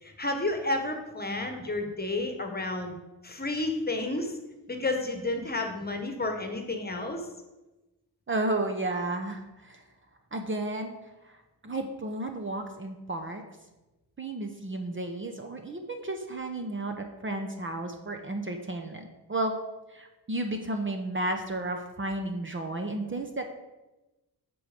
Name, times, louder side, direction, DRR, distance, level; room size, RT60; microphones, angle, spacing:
voice 1, 0.0-3.0 3.2-4.4 4.7-7.2, left 2 dB, 25° left, 5 dB, 1.4 m, -31 dB
voice 2, 8.3-9.8 10.3-11.0 11.6-13.4 14.2-19.6 19.9-23.5, right 2 dB, 30° right, 5 dB, 0.9 m, -33 dB
8.7 x 6.2 x 5.1 m, 1.1 s
cardioid pair, 95°, 41 cm